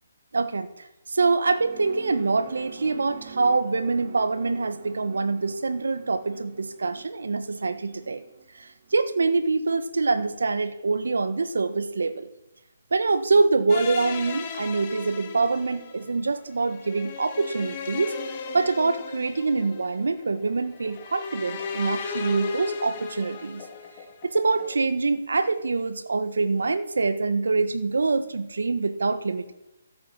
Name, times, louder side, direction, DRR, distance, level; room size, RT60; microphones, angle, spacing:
voice 1, 0.3-8.2 8.5-12.3 12.9-18.2 18.5-23.6 24.2-29.5, right 3 dB, 85° right, 10 dB, 1.4 m, -25 dB
sound 1, 1.1-9.8, right 8 dB, 50° right, 1.9 m, -46 dB
sound 2, 13.7-24.8, left 6 dB, 30° left, 2.2 m, -37 dB
14.0 x 8.6 x 9.9 m, 0.92 s
hypercardioid pair, 160°, 0 cm